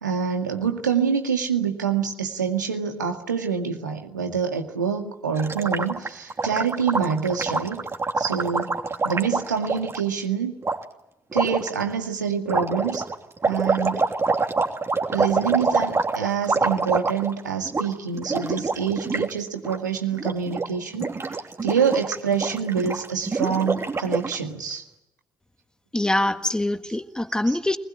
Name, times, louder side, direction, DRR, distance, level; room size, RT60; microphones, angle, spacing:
voice 1, 0.0-7.9 8.2-8.8 9.0-10.5 11.3-13.0 13.5-14.0 15.1-21.1 21.6-24.8 27.5-27.6, right 6 dB, 85° right, 4 dB, 2.1 m, -26 dB
Gurgling, 5.4-10.0 10.6-10.8 11.3-11.7 12.5-17.4 17.7-17.9 18.1-19.3 19.6-19.8 20.1-20.7 20.9-24.4, right 3 dB, 30° right, 2.9 m, -26 dB
voice 2, 25.9-27.8, left 1 dB, 10° left, 9 dB, 1.7 m, -24 dB
24.5 x 20.5 x 8.8 m, 0.87 s
figure-of-eight pair, 50°, 9 cm